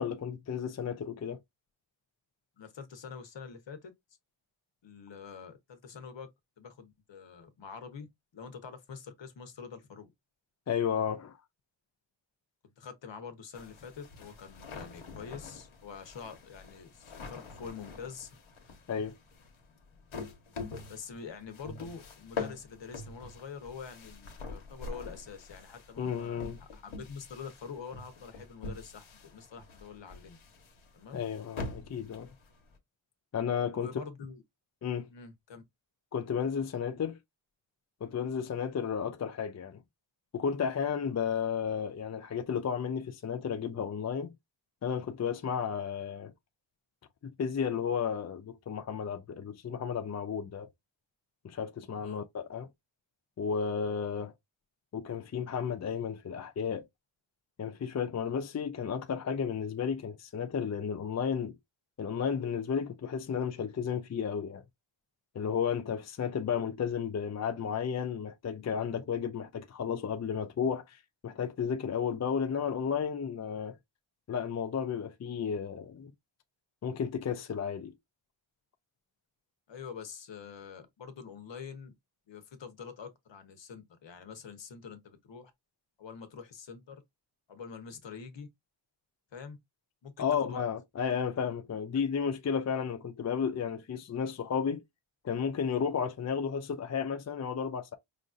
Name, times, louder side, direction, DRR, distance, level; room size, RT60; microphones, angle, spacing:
voice 1, 0.0-1.4 10.7-11.4 18.9-19.1 26.0-26.6 31.1-32.3 33.3-33.9 34.8-35.1 36.1-37.2 38.0-39.8 40.3-44.3 44.8-46.3 47.2-50.7 51.4-52.7 53.4-54.3 54.9-56.9 57.6-61.6 62.0-64.6 65.3-73.8 74.3-76.1 76.8-77.9 90.2-94.8 95.2-97.9, left 7 dB, 35° left, 0.4 m, -33 dB
voice 2, 2.6-3.9 4.8-6.3 6.6-10.1 12.8-18.3 20.9-30.4 30.9-31.2 33.7-34.4 35.1-35.6 36.9-37.0 52.0-52.2 79.7-81.9 82.3-85.5 86.0-87.0 87.5-88.5 89.3-89.6 90.0-90.6, left 6 dB, 65° left, 1.0 m, -46 dB
sound 1, 13.5-32.7, left 4 dB, 85° left, 1.2 m, -45 dB
5.0 x 2.6 x 2.4 m
wide cardioid pair, 155°, 48 cm